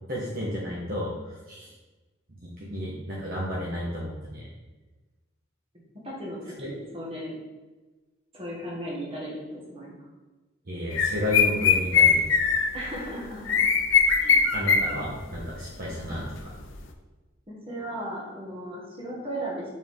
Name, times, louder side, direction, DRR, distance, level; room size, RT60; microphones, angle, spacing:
voice 1, 0.1-1.7 2.3-4.5 6.6-6.7 10.7-12.3 14.5-16.5, equal, 45° right, -6 dB, 1.0 m, -32 dB
voice 2, 6.0-7.3 8.3-10.0 12.7-13.6 14.2-14.4 17.5-19.6, right 1 dB, 30° right, -4 dB, 1.6 m, -36 dB
sound 1, 10.9-12.9 13.5-15.0 15.2-15.4 16.2-16.3 16.7-16.8, left 6 dB, 70° left, 0.6 m, -21 dB
5.7 x 4.5 x 3.6 m, 1.2 s
head